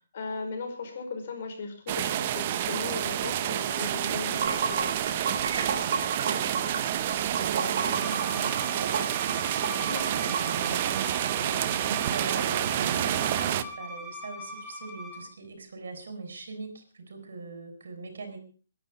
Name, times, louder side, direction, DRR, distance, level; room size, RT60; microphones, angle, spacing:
voice 1, 0.0-5.0 9.8-10.1, left 4 dB, 40° left, 5 dB, 4.9 m, -37 dB
sound 1, 1.9-13.6, right 11 dB, 30° right, 0.9 m, -29 dB
Water / Sink (filling or washing), 4.1-10.6, right 4 dB, 45° right, 4.0 m, -32 dB
voice 2, 6.2-9.4 10.1-18.4, right 3 dB, 65° right, 7 dB, 6.1 m, -41 dB
Bowed string instrument, 7.9-15.2, left 1 dB, 5° left, 4.2 m, -41 dB
21.0 x 11.0 x 5.4 m, 0.39 s
hypercardioid pair, 175°, 0 cm